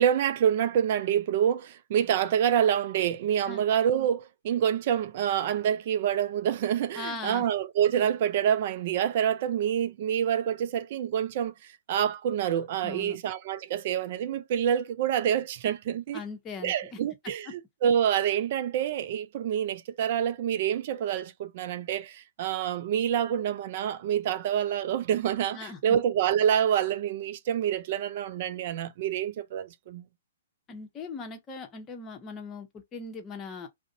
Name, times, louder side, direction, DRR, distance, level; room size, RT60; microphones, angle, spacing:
voice 1, 0.0-16.2 16.6-30.0, right 9 dB, 50° right, 0.3 m, -27 dB
voice 2, 7.0-7.5 12.8-13.2 16.1-17.0 25.5-26.0 30.7-33.7, left 4 dB, 20° left, 0.8 m, -39 dB
2.5 x 2.0 x 2.7 m
figure-of-eight pair, 120°, 0 cm